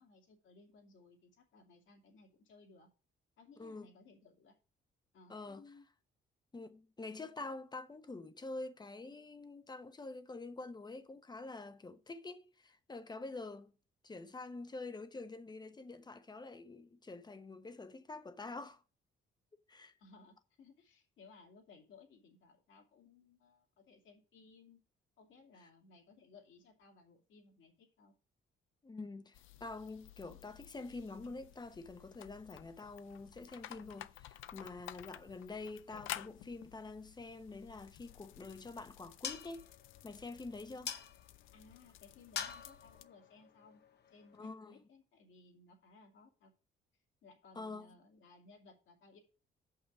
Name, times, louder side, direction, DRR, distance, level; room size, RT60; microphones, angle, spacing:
voice 1, 0.0-2.9 3.4-4.6 5.1-5.9 20.0-24.8 25.2-28.1 41.5-43.8 44.1-46.5 47.2-49.2, left 4 dB, 70° left, 2.6 m, -61 dB
voice 2, 5.3-5.6 6.5-13.7 14.0-18.8 19.7-19.9 25.6-25.7 28.8-39.7 40.0-41.0 44.4-44.8 47.5-47.9, left 3 dB, 20° left, 0.9 m, -47 dB
sound 1, 29.3-43.0, left 14 dB, 90° left, 0.5 m, -52 dB
sound 2, 38.1-44.5, left 7 dB, 55° left, 0.9 m, -48 dB
6.6 x 5.6 x 6.1 m
cardioid pair, 90°, 20 cm